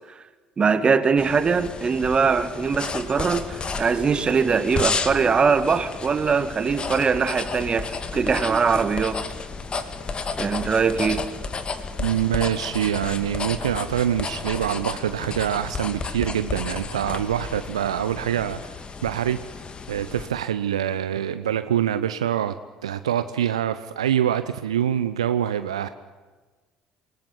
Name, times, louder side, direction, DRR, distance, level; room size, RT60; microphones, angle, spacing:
voice 1, 0.6-9.2 10.4-11.2, right 5 dB, 30° right, 11 dB, 2.2 m, -22 dB
sound 1, 1.2-20.3, left 4 dB, 30° left, 2.4 m, -32 dB
voice 2, 12.0-19.4 19.9-22.5 22.8-25.9, right 10 dB, 75° right, 11 dB, 0.8 m, -25 dB
28.0 x 19.5 x 9.9 m, 1.3 s
figure-of-eight pair, 55°, 3 cm